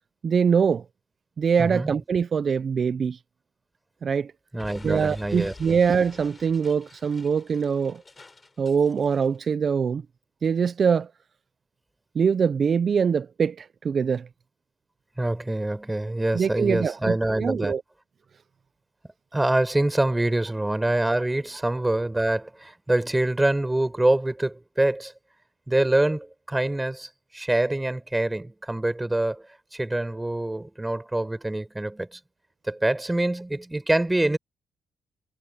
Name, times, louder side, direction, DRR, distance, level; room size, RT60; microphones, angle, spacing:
voice 1, 0.2-0.8 1.4-3.2 4.0-4.3 4.8-8.0 8.6-10.0 10.4-11.1 12.1-14.3 16.3-17.8, right 6 dB, 45° right, 0.5 m, -23 dB
voice 2, 1.6-1.9 4.5-5.8 15.2-17.7 19.3-25.1 25.7-29.4 29.7-32.2 32.7-34.4, right 1 dB, 10° right, 4.6 m, -25 dB
Explosion, 4.6-9.4, left 3 dB, 25° left, 5.8 m, -48 dB
cardioid pair, 90°, 0 cm